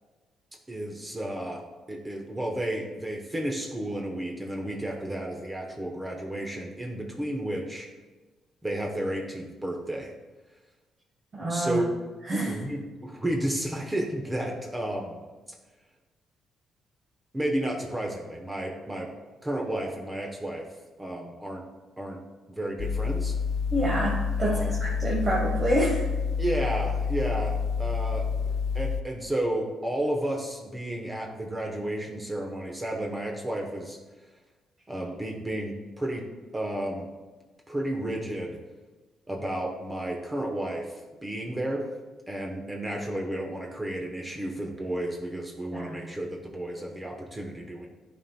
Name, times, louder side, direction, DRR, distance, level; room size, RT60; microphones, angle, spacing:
voice 1, 0.7-1.6 1.9-7.9 8.6-10.1 11.5-11.9 12.4-15.2 17.3-19.1 19.4-20.7 21.0-21.6 22.0-22.2 22.5-23.3 24.4-24.7 26.4-28.2 28.7-34.0 34.9-36.3 36.5-37.1 37.7-38.6 39.3-41.8 42.3-47.9, right 1 dB, 15° right, 0 dB, 0.9 m, -32 dB
voice 2, 11.3-11.8 12.3-12.6 23.7-26.0 45.7-46.0, right 1 dB, 35° right, -4 dB, 1.2 m, -27 dB
sound 1, 22.8-29.0, left 6 dB, 70° left, 0.3 m, -28 dB
11.0 x 4.3 x 2.3 m, 1.3 s
cardioid pair, 90°, 0 cm